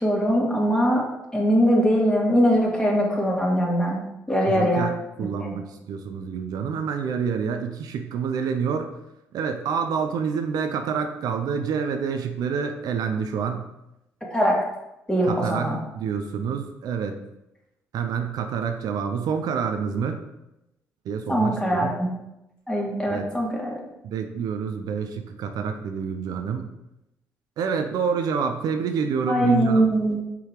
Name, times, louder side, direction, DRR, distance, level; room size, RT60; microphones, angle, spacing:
voice 1, 0.0-1.1 1.3-4.0 4.3-4.9 5.4-5.5 14.2-14.6 15.1-15.8 21.3-22.1 22.7-23.8 29.3-30.2, equal, 10° left, -3 dB, 2.5 m, -21 dB
voice 2, 4.5-4.9 5.2-8.9 9.3-13.6 15.2-17.2 17.9-20.2 21.0-21.9 23.0-23.3 24.0-26.7 27.6-29.9, right 6 dB, 70° right, 6 dB, 0.6 m, -27 dB
5.8 x 4.0 x 4.7 m, 0.89 s
supercardioid pair, 60°, 7 cm